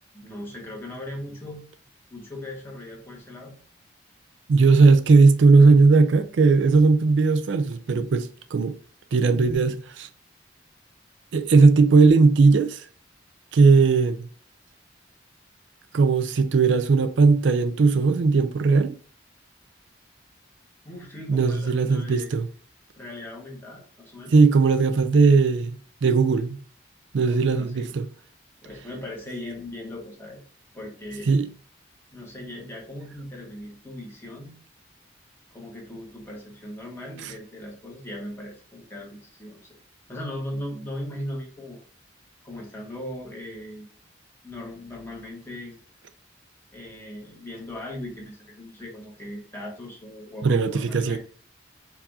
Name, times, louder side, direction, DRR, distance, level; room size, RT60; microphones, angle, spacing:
voice 1, 0.1-1.6 2.1-3.5 20.8-22.3 23.0-24.3 27.2-28.0 28.6-30.4 30.7-31.4 32.1-34.6 35.5-39.7 40.1-41.8 42.4-43.9 44.4-45.8 46.7-51.2, left 1 dB, 15° left, 1.5 m, -38 dB
voice 2, 4.5-8.8 9.1-10.1 11.3-12.9 13.5-14.3 15.9-18.9 21.3-22.5 24.3-26.6 27.1-28.1 31.3-31.5 37.2-37.3 50.4-51.2, right 4 dB, 80° right, 0.4 m, -18 dB
4.7 x 2.7 x 3.6 m
head